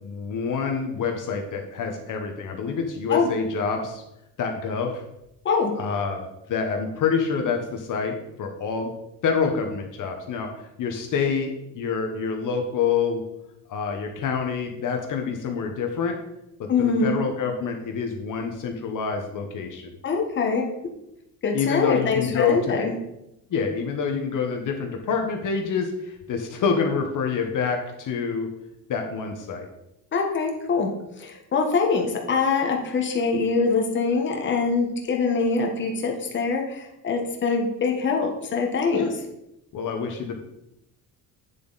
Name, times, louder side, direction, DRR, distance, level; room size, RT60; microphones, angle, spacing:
voice 1, 0.0-4.0 4.4-5.0 5.8-8.9 9.2-13.2 13.7-16.2 16.6-19.9 21.5-22.9 23.5-28.5 28.9-29.7 38.9-39.1 39.7-40.4, left 5 dB, 55° left, 3 dB, 1.1 m, -27 dB
voice 2, 16.7-17.2 20.0-20.7 21.4-22.9 30.1-30.9 31.2-39.1, left 4 dB, 30° left, 1 dB, 1.2 m, -24 dB
8.7 x 7.1 x 4.0 m, 0.86 s
cardioid pair, 175°, 38 cm